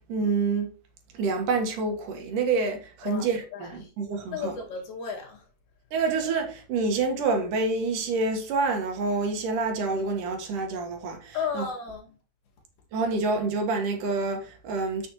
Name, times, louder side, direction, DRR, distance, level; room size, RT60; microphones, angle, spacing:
voice 1, 0.1-0.7 1.1-4.5 5.9-11.6 12.9-15.1, right 3 dB, 60° right, 2.5 m, -27 dB
voice 2, 3.0-3.9 4.3-5.5 11.3-12.2, left 6 dB, 55° left, 3.2 m, -34 dB
8.5 x 6.8 x 3.0 m
omnidirectional pair, 4.9 m